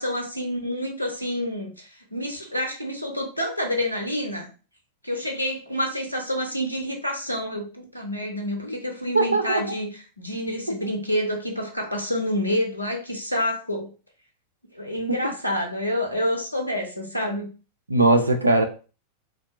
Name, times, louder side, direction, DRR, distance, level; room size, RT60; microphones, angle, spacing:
voice 1, 0.0-4.5 5.0-13.9 14.7-17.5, left 1 dB, 85° left, 2 dB, 0.6 m, -28 dB
voice 2, 9.1-9.6 15.1-15.2 17.9-18.6, right 2 dB, 80° right, 6 dB, 0.4 m, -20 dB
2.7 x 2.3 x 2.4 m, 0.35 s
figure-of-eight pair, 90°, 0 cm